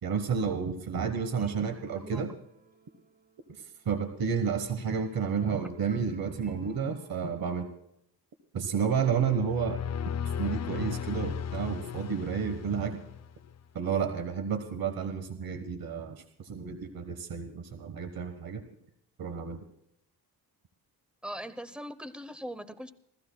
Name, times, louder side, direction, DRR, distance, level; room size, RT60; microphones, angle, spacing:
voice 1, 0.0-2.3 3.5-7.7 8.5-9.8 10.4-13.0 13.7-18.6 19.2-19.6, right 6 dB, 65° right, 8 dB, 1.4 m, -31 dB
voice 2, 1.4-2.3 21.2-22.9, equal, 5° right, 13 dB, 0.8 m, -41 dB
sound 1, 1.6-7.3, right 3 dB, 25° right, 4.3 m, -59 dB
sound 2, 9.3-13.6, left 8 dB, 45° left, 0.5 m, -36 dB
28.5 x 15.0 x 2.3 m, 0.77 s
cardioid pair, 110°, 39 cm